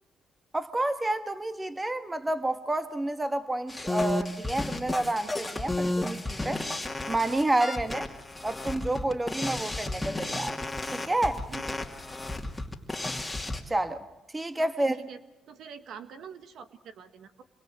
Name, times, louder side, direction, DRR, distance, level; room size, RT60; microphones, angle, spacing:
voice 1, 0.5-6.6 7.1-8.1 8.4-10.6 10.9-11.4 13.7-14.0 14.3-15.0, right 1 dB, 15° right, 1.6 m, -29 dB
sound 1, 3.7-13.6, left 2 dB, 10° left, 2.7 m, -33 dB
voice 2, 14.6-15.2 15.5-17.4, right 7 dB, 75° right, 1.6 m, -46 dB
27.5 x 22.5 x 7.7 m
cardioid pair, 90°, 0 cm